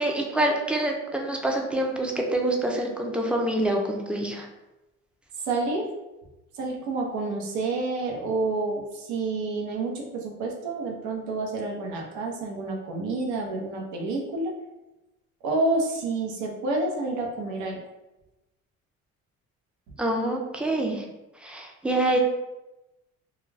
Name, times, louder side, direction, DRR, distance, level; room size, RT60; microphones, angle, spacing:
voice 1, 0.0-4.5 20.0-21.1 21.4-22.2, right 1 dB, 5° right, 1 dB, 0.5 m, -26 dB
voice 2, 5.4-5.9 6.6-14.5 15.4-17.8, right 3 dB, 75° right, 0 dB, 0.7 m, -29 dB
2.3 x 2.3 x 3.2 m, 0.99 s
supercardioid pair, 90°, 29 cm